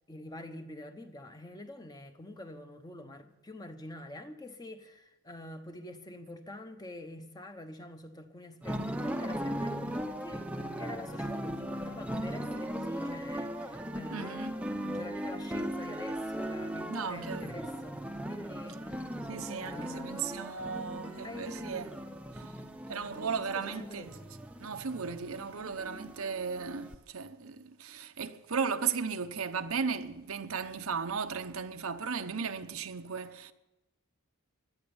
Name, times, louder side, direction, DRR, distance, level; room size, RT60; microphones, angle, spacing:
voice 1, 0.0-10.5 10.8-19.1 19.6-20.3 21.2-21.8 23.5-24.3, left 1 dB, 20° left, 1.0 m, -46 dB
sound 1, 8.6-27.0, equal, 5° right, 0.8 m, -38 dB
voice 2, 14.1-14.6 16.9-17.5 19.3-22.0 22.3-22.5 22.9-24.2 24.6-33.5, right 6 dB, 80° right, 0.9 m, -36 dB
17.0 x 11.5 x 7.1 m
head